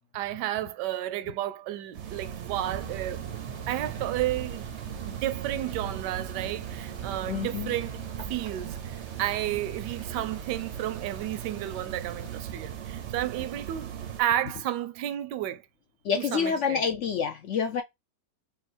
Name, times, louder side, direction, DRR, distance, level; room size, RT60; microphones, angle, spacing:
voice 1, 0.1-3.2 3.7-4.7 5.0-8.0 8.3-13.9 14.2-15.6 16.2-16.8, right 13 dB, 80° right, 1.2 m, -32 dB
sound 1, 1.9-14.2, right 9 dB, 60° right, 0.7 m, -38 dB
Thunder, 2.6-12.4, right 4 dB, 40° right, 0.4 m, -45 dB
voice 2, 7.3-7.7 16.0-17.8, left 6 dB, 75° left, 0.6 m, -28 dB
3.8 x 2.6 x 4.2 m
omnidirectional pair, 1.8 m